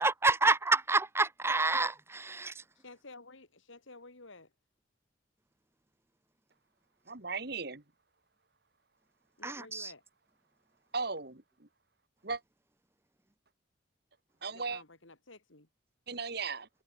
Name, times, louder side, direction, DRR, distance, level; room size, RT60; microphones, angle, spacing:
voice 1, 0.0-1.9 2.3-2.5 9.4-9.9, right 3 dB, 10° right, 0.5 m, -28 dB
voice 2, 2.7-4.5 9.4-10.0 14.5-15.7, left 3 dB, 75° left, 3.3 m, -52 dB
voice 3, 7.1-7.8 10.9-11.7 12.2-12.4 14.4-14.8 16.1-16.7, right 4 dB, 50° right, 2.0 m, -37 dB
head